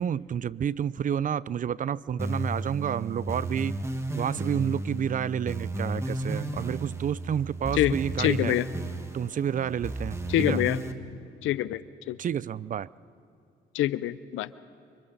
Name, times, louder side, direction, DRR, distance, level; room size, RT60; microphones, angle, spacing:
voice 1, 0.0-3.8 4.1-8.6 9.1-10.6 12.2-12.9, right 8 dB, 40° right, 21 dB, 0.4 m, -30 dB
sound 1, 2.2-10.9, right 2 dB, 15° right, 1.5 m, -33 dB
voice 2, 7.7-8.7 10.3-10.8 11.4-11.8 12.1-12.2 13.7-14.5, left 14 dB, 90° left, 17 dB, 0.6 m, -26 dB
29.5 x 25.5 x 4.1 m, 2.5 s
cardioid pair, 90°, 20 cm